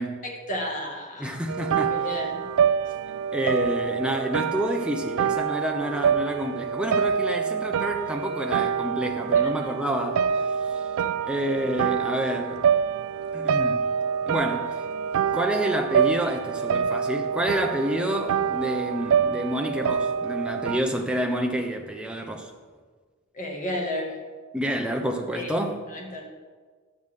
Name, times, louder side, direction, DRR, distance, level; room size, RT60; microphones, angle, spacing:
voice 1, 0.2-1.4 1.9-2.5 9.3-9.5 23.3-24.2 25.3-25.5 25.9-26.3, left 1 dB, 35° left, 1.8 m, -32 dB
voice 2, 1.2-2.0 3.3-10.8 11.3-12.6 13.3-13.9 14.2-14.8 15.3-22.5 24.5-25.8, right 1 dB, 5° right, 0.7 m, -28 dB
sound 1, 1.5-20.8, right 7 dB, 65° right, 0.3 m, -26 dB
10.5 x 8.0 x 3.6 m
head